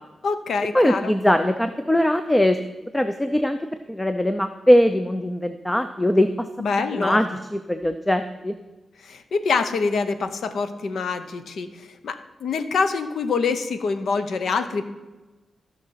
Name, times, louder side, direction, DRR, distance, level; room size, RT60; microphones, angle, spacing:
voice 1, 0.2-1.1 6.6-7.2 9.0-14.8, left 4 dB, 80° left, 10 dB, 0.9 m, -25 dB
voice 2, 0.7-2.6 2.9-6.5 6.9-8.6, left 1 dB, 10° left, 9 dB, 0.5 m, -21 dB
15.0 x 5.9 x 5.7 m, 1.1 s
wide cardioid pair, 120°, 0 cm